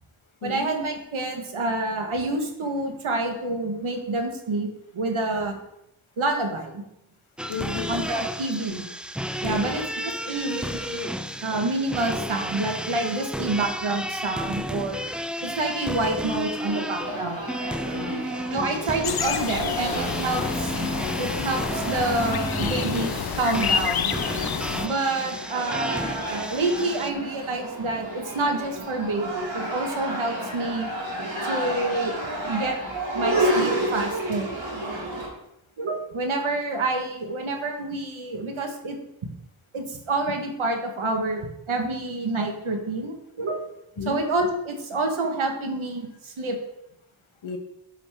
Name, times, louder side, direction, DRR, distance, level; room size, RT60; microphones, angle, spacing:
voice 1, 0.4-4.7 4.9-5.6 6.2-6.8 7.9-8.8 9.4-11.1 11.4-15.0 15.4-17.4 18.5-20.7 21.2-24.1 24.8-30.9 31.4-32.1 32.5-32.8 33.1-34.5 35.8-39.0 39.7-43.6 44.1-46.6, right 2 dB, 85° right, 3 dB, 1.4 m, -28 dB
sound 1, 7.4-27.1, equal, ahead, 0.4 m, -32 dB
voice 2, 7.5-8.0 9.4-9.8 17.9-18.3 18.6-18.8 44.0-44.2 47.4-47.6, left 5 dB, 85° left, 6 dB, 1.1 m, -33 dB
sound 2, 16.7-35.3, right 1 dB, 70° right, 3.0 m, -31 dB
sound 3, 19.0-24.9, left 8 dB, 55° left, 0.5 m, -29 dB
10.5 x 5.1 x 3.5 m, 0.84 s
cardioid pair, 40°, 47 cm